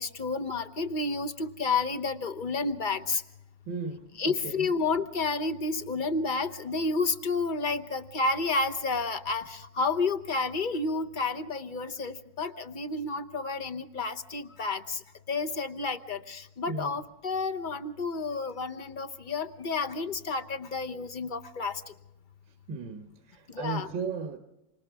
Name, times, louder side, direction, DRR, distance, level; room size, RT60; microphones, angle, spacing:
voice 1, 0.0-3.2 4.2-15.0 15.3-21.8 23.5-23.9, left 3 dB, 35° left, 1.0 m, -30 dB
voice 2, 3.7-4.7 16.7-17.0 22.7-24.4, right 4 dB, 75° right, 1.9 m, -36 dB
28.5 x 25.5 x 3.5 m
omnidirectional pair, 2.0 m